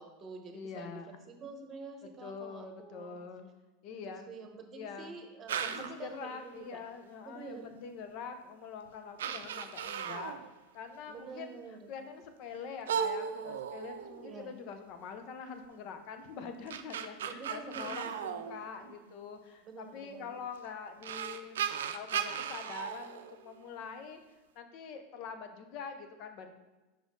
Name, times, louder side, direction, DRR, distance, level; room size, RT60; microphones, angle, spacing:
voice 1, 0.0-1.0 1.3-3.2 3.9-6.8 7.2-7.8 11.1-11.9 14.2-14.5 17.2-18.4 19.6-20.4, right 4 dB, 30° right, 5 dB, 1.1 m, -47 dB
voice 2, 0.5-1.1 2.2-3.5 3.8-4.3 4.7-5.2 5.6-10.3 10.7-11.6 11.9-21.6 21.9-24.2 24.5-26.5, left 6 dB, 55° left, 7 dB, 0.8 m, -44 dB
sound 1, 5.5-6.1 8.1-8.2 8.9-9.0 9.2-10.5 12.9-14.5 16.4-19.1 20.5-20.6 21.0-23.9, right 8 dB, 85° right, 0.4 m, -36 dB
5.2 x 5.1 x 3.8 m, 1.1 s
hypercardioid pair, 105°, 0 cm